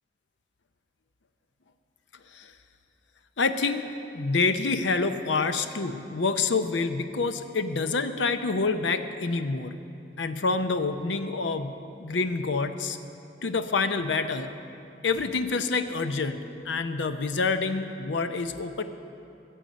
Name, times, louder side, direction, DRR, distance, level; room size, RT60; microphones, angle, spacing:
voice 1, 3.4-9.7 10.2-11.7 12.0-13.0 13.4-14.5 15.0-16.4 16.6-18.8, left 4 dB, 90° left, 9 dB, 0.7 m, -27 dB
21.5 x 7.7 x 5.3 m, 2.7 s
head